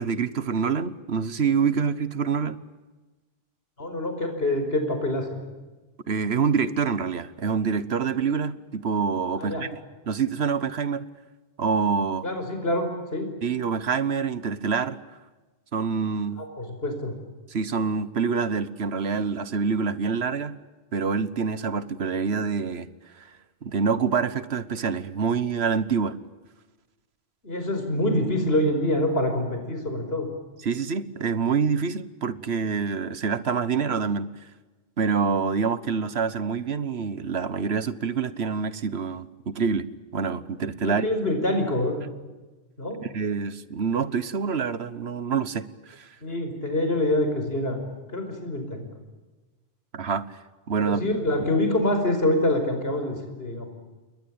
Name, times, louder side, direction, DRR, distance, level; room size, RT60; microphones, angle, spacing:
voice 1, 0.0-2.6 6.1-9.7 10.1-11.1 11.6-12.2 13.4-15.0 15.7-16.4 17.5-20.6 20.9-22.9 23.2-23.3 23.6-26.2 30.6-34.3 35.0-39.9 40.1-41.0 43.0-46.1 49.9-50.2 50.7-51.0, right 5 dB, 80° right, 15 dB, 1.5 m, -26 dB
voice 2, 3.8-5.4 9.4-9.6 12.2-13.3 16.4-17.1 27.4-30.3 40.8-42.0 42.8-43.0 46.2-47.8 48.1-48.9 50.8-53.7, left 1 dB, 70° left, 6 dB, 5.4 m, -26 dB
29.0 x 21.5 x 8.8 m, 1.2 s
omnidirectional pair, 1.1 m